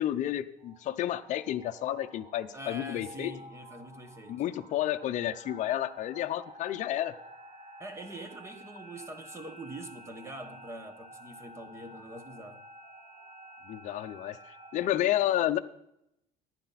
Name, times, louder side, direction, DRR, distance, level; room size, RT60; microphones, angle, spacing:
voice 1, 0.0-3.3 4.3-7.1 13.7-14.4 14.7-15.6, left 12 dB, 45° left, 0.7 m, -30 dB
sound 1, 0.6-14.9, right 1 dB, 35° right, 1.6 m, -51 dB
voice 2, 2.5-4.4 7.8-12.6, right 1 dB, 15° right, 1.2 m, -44 dB
14.5 x 10.5 x 4.1 m
cardioid pair, 140°, 17 cm